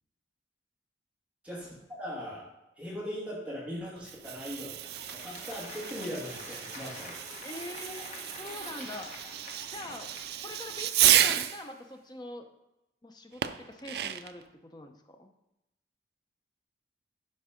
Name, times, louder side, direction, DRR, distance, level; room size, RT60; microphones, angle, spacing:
voice 1, 1.4-2.5 2.8-7.2, equal, 5° right, -6 dB, 2.2 m, -40 dB
Fireworks, 4.0-11.6 13.4-14.4, right 12 dB, 60° right, 0.4 m, -31 dB
Applause, 4.2-11.8, left 2 dB, 40° left, 1.3 m, -47 dB
voice 2, 7.4-8.0 8.4-9.1 9.7-10.1 10.4-12.5 13.0-15.3, left 2 dB, 25° left, 5 dB, 0.7 m, -43 dB
11.0 x 4.6 x 5.2 m, 0.91 s
head